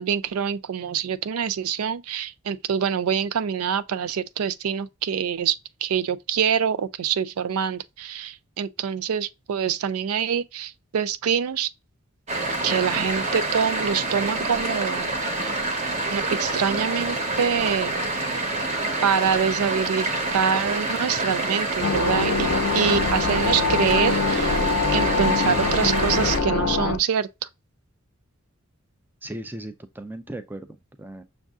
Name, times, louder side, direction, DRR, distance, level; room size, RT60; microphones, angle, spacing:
voice 1, 0.0-5.6 5.8-11.7 12.6-15.1 16.1-17.9 19.0-22.5 22.7-24.6 24.9-27.3, right 7 dB, 90° right, 0.4 m, -25 dB
sound 1, 12.3-26.4, right 2 dB, 30° right, 0.9 m, -27 dB
sound 2, 21.8-27.0, left 4 dB, 85° left, 0.5 m, -24 dB
voice 2, 29.2-31.2, right 1 dB, 10° right, 0.4 m, -37 dB
6.3 x 2.5 x 2.3 m
head